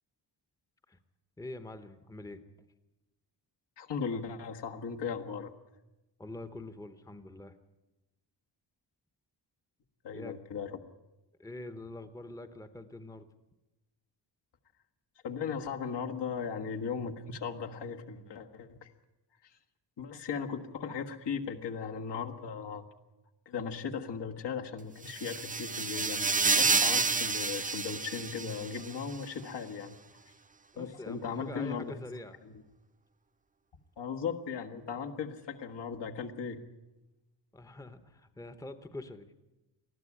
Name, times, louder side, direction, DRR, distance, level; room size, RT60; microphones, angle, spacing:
voice 1, 1.4-2.4 6.2-7.5 10.1-10.4 11.4-13.3 30.7-32.4 37.5-39.3, left 2 dB, 10° left, 10 dB, 0.8 m, -45 dB
voice 2, 3.8-5.5 10.0-10.8 15.2-18.9 19.4-19.5 20.0-22.8 23.4-30.0 30.8-31.9 32.4-32.6 34.0-36.6, left 6 dB, 75° left, 3 dB, 1.7 m, -37 dB
sound 1, 25.1-28.9, right 4 dB, 20° right, 0.6 m, -29 dB
20.0 x 13.5 x 9.8 m, 1.0 s
wide cardioid pair, 170°, 42 cm